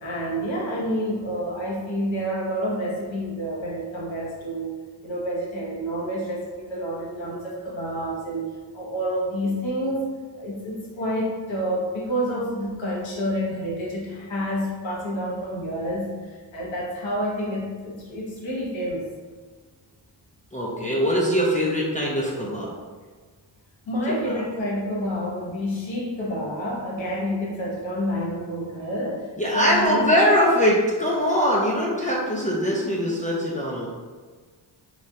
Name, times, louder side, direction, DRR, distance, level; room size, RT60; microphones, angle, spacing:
voice 1, 0.0-4.7 5.0-19.0 23.9-30.0, equal, 85° left, -4 dB, 1.0 m, -29 dB
voice 2, 20.5-22.7 24.3-24.4 29.4-33.9, equal, 20° left, -5 dB, 0.4 m, -22 dB
3.1 x 2.3 x 2.6 m, 1.5 s
cardioid pair, 90°, 45 cm